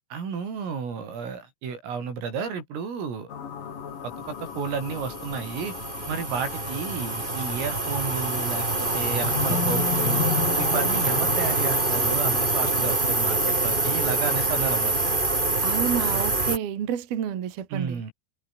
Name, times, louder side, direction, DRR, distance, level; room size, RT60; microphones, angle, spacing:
voice 1, 0.1-3.3 4.0-5.7 6.1-8.7 8.9-10.3 10.6-14.9 17.7-18.1, right 6 dB, 90° right, 9.2 m, -32 dB
sound 1, 3.3-12.9, left 7 dB, 50° left, 4.2 m, -34 dB
sound 2, 4.4-16.6, right 2 dB, 15° right, 1.8 m, -25 dB
voice 2, 15.6-18.0, right 9 dB, 55° right, 4.0 m, -29 dB
omnidirectional pair, 5.7 m